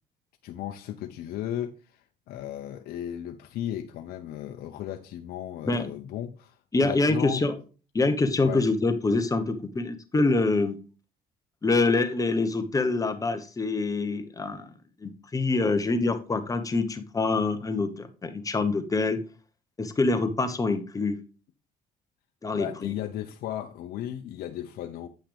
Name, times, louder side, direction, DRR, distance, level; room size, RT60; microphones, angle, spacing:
voice 1, 0.4-7.4 8.5-8.6 22.5-25.1, left 11 dB, 70° left, 0.7 m, -35 dB
voice 2, 6.7-7.5 7.9-10.8 11.6-14.7 15.0-19.2 19.8-21.2 22.4-22.9, left 3 dB, 20° left, 1.1 m, -25 dB
8.9 x 5.7 x 3.4 m
cardioid pair, 100°, 17 cm